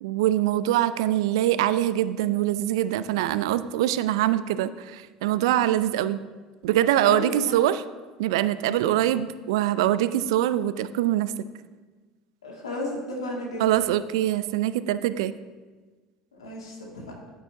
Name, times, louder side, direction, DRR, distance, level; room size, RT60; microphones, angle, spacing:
voice 1, 0.0-6.2 6.6-7.8 8.2-11.3 13.6-15.3, right 13 dB, 70° right, 14 dB, 0.4 m, -23 dB
voice 2, 7.0-7.6 12.4-13.8 16.4-17.1, left 1 dB, 85° left, -1 dB, 1.9 m, -34 dB
9.8 x 8.9 x 2.6 m, 1.3 s
hypercardioid pair, 70°, 3 cm